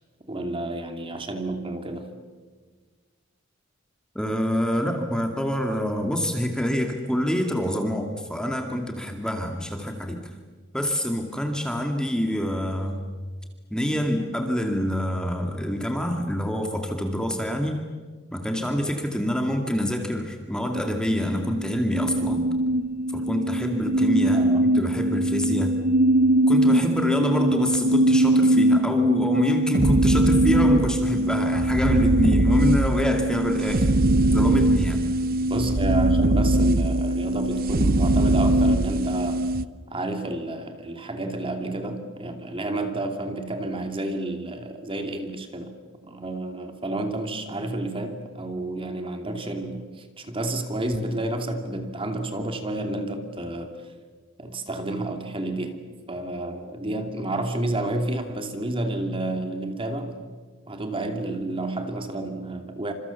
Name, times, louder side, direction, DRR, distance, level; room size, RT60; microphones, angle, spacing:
voice 1, 0.2-2.1 24.3-24.6 35.5-39.4 39.9-45.7 46.0-53.7 54.4-55.8 56.1-60.2 60.7-62.9, right 2 dB, 25° right, 6 dB, 2.6 m, -30 dB
voice 2, 4.1-10.2 10.7-13.1 13.7-17.8 18.3-22.4 23.1-25.8 26.5-33.9 34.3-35.0, equal, 5° left, 3 dB, 2.2 m, -26 dB
sound 1, 20.7-39.7, right 1 dB, 45° right, 0.7 m, -21 dB
29.5 x 27.0 x 7.1 m, 1.5 s
head